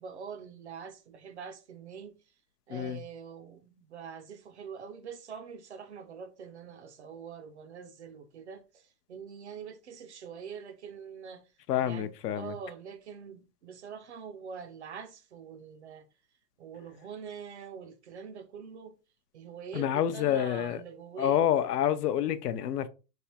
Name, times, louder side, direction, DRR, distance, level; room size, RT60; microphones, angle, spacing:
voice 1, 0.0-2.2 2.7-11.5 11.8-16.1 16.6-18.9 19.3-21.4, right 7 dB, 50° right, 0.4 m, -44 dB
voice 2, 11.7-12.5 19.7-20.8 21.2-22.9, left 10 dB, 75° left, 0.6 m, -28 dB
3.4 x 2.4 x 2.8 m
hypercardioid pair, 160°, 48 cm